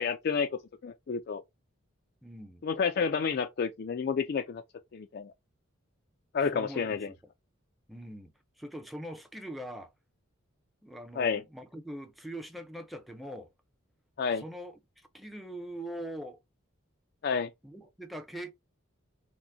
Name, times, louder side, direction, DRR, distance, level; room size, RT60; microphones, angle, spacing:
voice 1, 0.0-1.4 2.6-4.6 4.9-5.3 6.3-7.1 11.2-11.4 14.2-14.4 17.2-17.5, left 5 dB, 45° left, 0.3 m, -30 dB
voice 2, 2.2-2.7 6.5-7.2 7.9-8.3 8.6-9.9 10.8-13.5 14.4-16.4 17.6-18.5, right 1 dB, ahead, 0.5 m, -42 dB
5.9 x 2.1 x 2.6 m
head